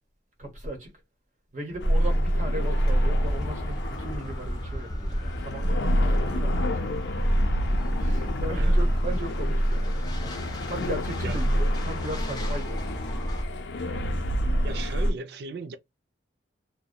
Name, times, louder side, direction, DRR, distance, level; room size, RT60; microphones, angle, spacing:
voice 1, 0.4-0.9 1.5-6.9 7.2-7.6 8.0-12.8, right 1 dB, 40° right, 0.9 m, -38 dB
sound 1, 1.8-15.1, equal, 70° left, 0.5 m, -26 dB
sound 2, 2.6-13.4, equal, 20° left, 0.5 m, -35 dB
voice 2, 11.2-11.6 12.3-12.4 14.6-15.8, right 3 dB, 60° right, 0.4 m, -37 dB
2.7 x 2.1 x 2.2 m
head